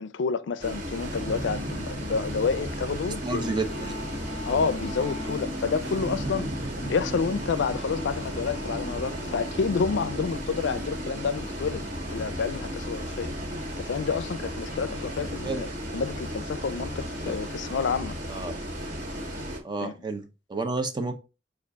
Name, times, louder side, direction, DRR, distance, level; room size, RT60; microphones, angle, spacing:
voice 1, 0.0-3.5 4.5-13.3 13.8-18.2 19.8-19.9, left 5 dB, 80° left, 0.4 m, -29 dB
Bus, 0.6-19.6, equal, 45° right, 1.4 m, -35 dB
sound 1, 1.0-15.9, right 1 dB, 75° right, 0.9 m, -40 dB
voice 2, 3.2-3.9 15.4-15.6 17.2-17.4 18.3-18.5 19.6-21.1, right 3 dB, 25° right, 0.6 m, -31 dB
sound 2, 3.3-17.8, left 2 dB, 30° left, 0.7 m, -46 dB
5.0 x 2.4 x 3.5 m
head